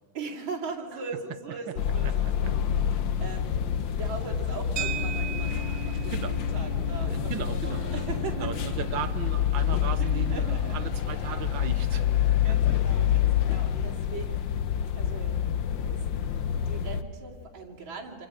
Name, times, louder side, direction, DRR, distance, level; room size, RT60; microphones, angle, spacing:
voice 1, 0.1-8.8 10.0-10.8 12.4-14.5 15.0-15.4 15.8-18.3, right 4 dB, 90° right, -4 dB, 3.4 m, -40 dB
sound 1, 1.8-17.0, left 9 dB, 75° left, 1.5 m, -27 dB
voice 2, 2.0-2.5 6.0-6.4 7.0-8.0 8.3-12.6, right 9 dB, 75° right, 11 dB, 1.6 m, -37 dB
sound 2, 4.8-13.2, right 11 dB, 60° right, 1.2 m, -41 dB
Acoustic guitar, 7.7-10.7, left 3 dB, 40° left, 3.9 m, -43 dB
27.5 x 27.0 x 5.0 m, 2.2 s
omnidirectional pair, 2.1 m